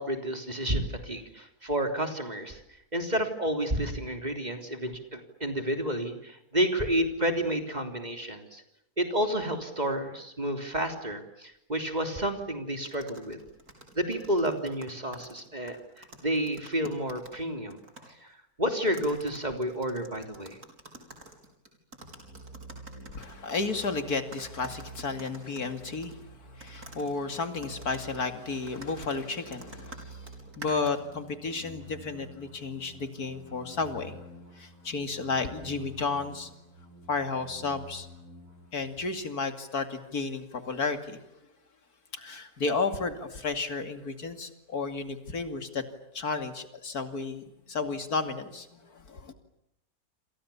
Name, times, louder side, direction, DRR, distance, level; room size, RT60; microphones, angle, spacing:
voice 1, 0.0-2.6 2.9-8.6 9.0-13.4 14.0-20.6, right 1 dB, 25° right, 6 dB, 3.5 m, -30 dB
sound 1, 12.8-17.4 17.7-18.1 18.9-23.9 24.3-26.2 26.6-31.2, right 2 dB, 80° right, 5.8 m, -49 dB
sound 2, 22.0-39.1, right 1 dB, 65° right, 7.0 m, -49 dB
voice 2, 23.1-26.2 26.5-30.2 30.6-34.2 34.6-36.5 37.1-38.1 38.7-41.2 42.1-45.8 46.1-49.3, left 4 dB, 80° left, 8 dB, 3.0 m, -32 dB
28.0 x 28.0 x 7.2 m, 0.81 s
omnidirectional pair, 1.6 m